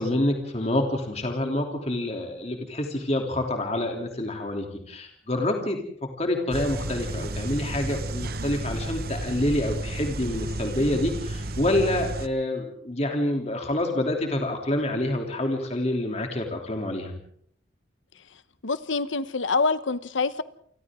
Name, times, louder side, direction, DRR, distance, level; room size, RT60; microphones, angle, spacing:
voice 1, 0.0-17.1, left 1 dB, 35° left, 3.2 m, -27 dB
sound 1, 6.5-12.3, right 2 dB, 50° right, 1.0 m, -32 dB
voice 2, 18.6-20.4, left 4 dB, 85° left, 1.1 m, -25 dB
29.0 x 24.5 x 3.8 m
head